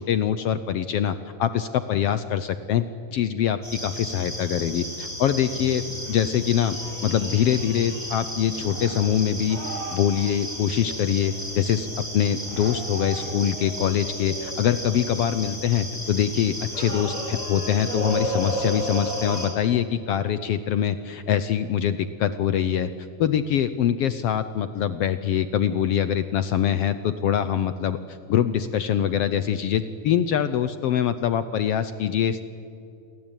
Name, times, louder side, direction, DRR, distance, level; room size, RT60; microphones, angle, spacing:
voice 1, 0.0-6.8 7.0-9.6 9.9-22.9 23.2-32.4, left 9 dB, 70° left, 12 dB, 1.5 m, -24 dB
sound 1, 3.6-19.5, equal, 10° right, 6.5 m, -33 dB
28.5 x 22.5 x 9.1 m, 2.6 s
omnidirectional pair, 3.6 m